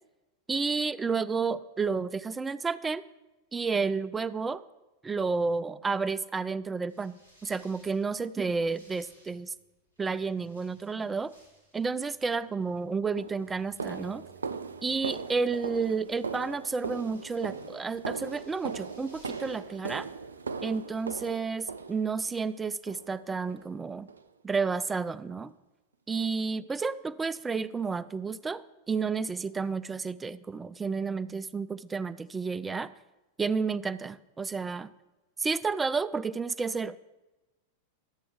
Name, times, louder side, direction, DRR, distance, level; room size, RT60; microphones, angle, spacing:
voice 1, 0.5-3.0 3.5-4.6 5.0-9.5 10.0-11.3 11.7-14.2 14.8-20.1 20.6-24.1 24.4-25.5 26.1-28.6 28.9-32.9 33.4-34.9 35.4-37.0, right 4 dB, 15° right, 16 dB, 0.4 m, -31 dB
sound 1, 6.9-19.6, right 2 dB, 85° left, 3.3 m, -62 dB
sound 2, 12.5-12.6 13.2-22.4 22.9-23.2 23.5-23.7 24.1-24.3 24.7-24.8 25.3-25.4, right 5 dB, 75° right, 0.5 m, -39 dB
12.0 x 7.8 x 4.8 m, 1.1 s
figure-of-eight pair, 90°, 0 cm